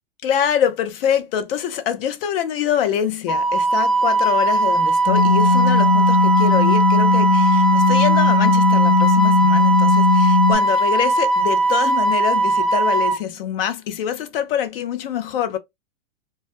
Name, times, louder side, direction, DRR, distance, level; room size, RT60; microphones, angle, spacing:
voice 1, 0.2-15.6, left 9 dB, 65° left, 0.6 m, -25 dB
Wind instrument woodwind instrument, 3.3-13.2, right 2 dB, ahead, 0.5 m, -19 dB
sound 1, 5.1-10.5, left 4 dB, 45° left, 1.0 m, -17 dB
2.2 x 2.1 x 2.6 m
hypercardioid pair, 110°, 31 cm